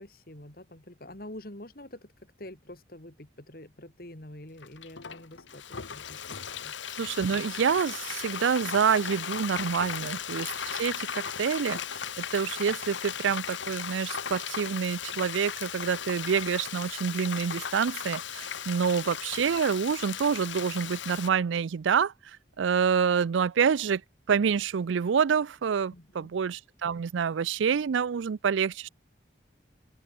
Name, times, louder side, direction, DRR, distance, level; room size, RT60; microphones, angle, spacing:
voice 1, 0.0-6.7 25.9-26.3, left 1 dB, 50° left, 2.7 m, -47 dB
Frying (food), 4.6-21.3, left 8 dB, 85° left, 1.5 m, -36 dB
voice 2, 7.0-11.8 12.2-22.1 22.6-24.0 24.3-28.9, right 6 dB, 85° right, 0.4 m, -27 dB
open air
head